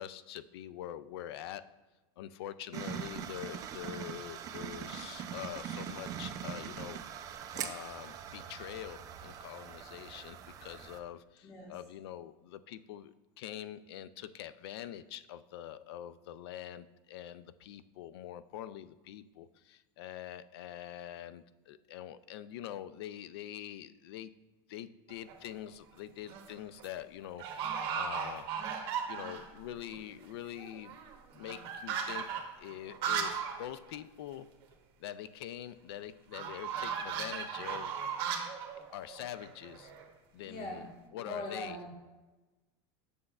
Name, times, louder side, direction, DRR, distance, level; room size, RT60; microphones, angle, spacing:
voice 1, 0.0-1.7 2.2-7.0 7.5-24.3 24.7-28.5 29.1-31.0 31.3-32.3 32.6-34.5 35.0-38.0 38.9-39.9 40.3-40.9 41.1-41.8, left 11 dB, 85° left, 15 dB, 0.4 m, -44 dB
sound 1, 2.7-11.0, right 8 dB, 25° right, 0.4 m, -42 dB
voice 2, 11.4-11.8 40.4-41.9, left 1 dB, 40° left, -2 dB, 1.5 m, -42 dB
sound 2, 25.1-25.5 26.1-26.5 26.8-26.9 27.4-29.6 29.9-30.0 30.2-33.6 33.9-34.0 34.3-34.4 36.3-40.0, right 7 dB, 45° right, 1.1 m, -37 dB
7.6 x 6.5 x 2.3 m, 1.2 s
supercardioid pair, 160°, 13 cm